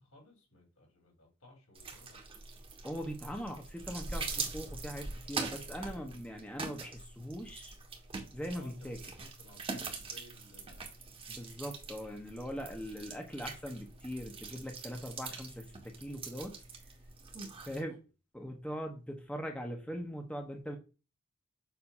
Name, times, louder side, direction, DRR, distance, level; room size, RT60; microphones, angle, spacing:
voice 1, 0.0-2.4 5.8-6.2 8.5-10.8 17.5-17.8, left 2 dB, 85° left, 0 dB, 3.1 m, -58 dB
sound 1, 1.7-17.8, right 4 dB, 25° right, 1.2 m, -43 dB
voice 2, 2.8-7.7 8.3-9.0 11.3-16.5 17.7-18.0 18.3-20.8, equal, 5° left, 3 dB, 0.8 m, -41 dB
7.0 x 2.6 x 5.3 m, 0.32 s
head